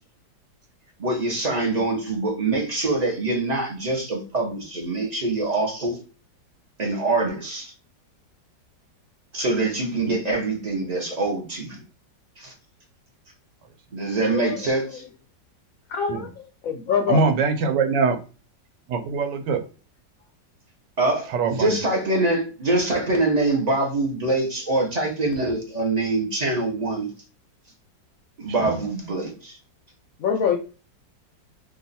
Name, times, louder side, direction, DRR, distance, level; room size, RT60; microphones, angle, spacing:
voice 1, 1.0-6.0 6.8-7.7 9.3-11.8 12.4-12.5 13.9-15.0 21.0-27.1 28.4-29.6, right 2 dB, 40° right, 0.6 m, -24 dB
voice 2, 14.3-15.1 15.9-17.3 30.2-30.6, left 7 dB, 75° left, 0.7 m, -25 dB
voice 3, 17.1-18.2 18.9-19.6 21.3-21.8 28.6-28.8, right 4 dB, 75° right, 1.3 m, -22 dB
2.9 x 2.3 x 4.0 m
omnidirectional pair, 1.9 m